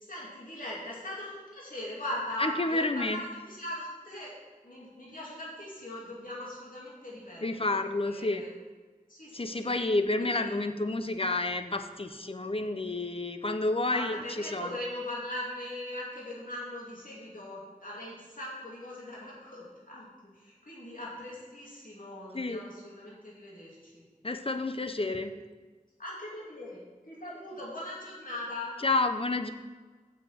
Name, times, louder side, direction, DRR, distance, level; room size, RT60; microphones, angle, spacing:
voice 1, 0.0-4.3 4.6-8.5 9.1-9.8 10.2-10.6 13.9-24.0 26.0-28.8, left 1 dB, 75° left, -6 dB, 2.6 m, -40 dB
voice 2, 2.4-3.2 7.4-8.4 9.3-14.8 22.3-22.7 24.2-25.3 28.8-29.5, left 2 dB, 40° left, 8 dB, 0.7 m, -30 dB
7.3 x 6.1 x 7.2 m, 1.4 s
wide cardioid pair, 50°, 14 cm